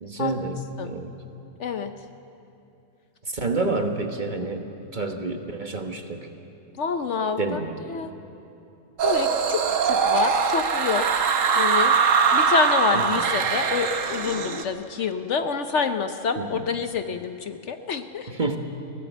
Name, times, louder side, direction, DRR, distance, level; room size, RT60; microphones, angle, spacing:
voice 1, 0.0-1.2 3.3-4.7 4.9-6.3 7.4-7.8 12.9-13.2 16.4-16.7 18.3-18.6, right 3 dB, 35° right, 4 dB, 1.3 m, -29 dB
voice 2, 1.6-1.9 6.8-7.6 7.9-8.1 9.0-11.3 11.5-11.9 12.3-18.3, left 5 dB, 60° left, 8 dB, 1.0 m, -27 dB
sound 1, 9.0-14.6, right 6 dB, 65° right, 1.4 m, -22 dB
21.0 x 16.5 x 8.0 m, 2.8 s
omnidirectional pair, 1.5 m